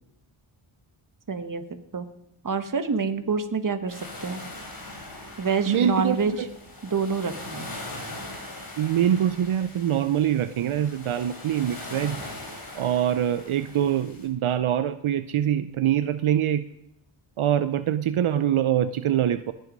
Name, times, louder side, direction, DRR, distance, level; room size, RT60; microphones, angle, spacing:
voice 1, 1.3-1.6 1.9-2.1 2.4-4.4 5.4-6.3 6.8-7.7, right 5 dB, 40° right, 9 dB, 1.3 m, -27 dB
sound 1, 3.9-14.3, left 2 dB, 45° left, 3.9 m, -41 dB
voice 2, 5.7-6.5 8.8-12.2 12.7-16.6 17.4-19.5, right 10 dB, 75° right, 12 dB, 0.7 m, -24 dB
18.0 x 9.2 x 5.3 m, 0.84 s
wide cardioid pair, 115°, 50 cm